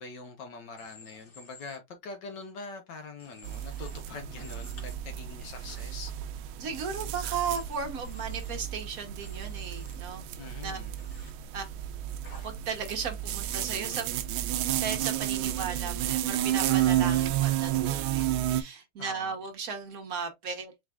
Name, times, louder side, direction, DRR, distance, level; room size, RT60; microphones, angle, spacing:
voice 1, 0.0-6.1 10.4-10.9 19.0-19.3, left 4 dB, 60° left, 1.3 m, -43 dB
Human voice / Train, 0.8-1.8 3.2-4.0 4.4-4.9 5.7-5.8 7.5-7.6 8.0-8.6 9.2-10.0 11.0-11.3 12.2-12.5 13.8-14.2 15.0-15.2, left 2 dB, 40° left, 2.0 m, -53 dB
sound 1, 3.4-18.6, right 12 dB, 75° right, 1.3 m, -31 dB
voice 2, 6.6-10.3 10.6-10.8 11.2-11.7 12.4-14.1 14.4-20.7, right 6 dB, 50° right, 1.1 m, -36 dB
4.7 x 3.9 x 2.3 m
omnidirectional pair, 2.4 m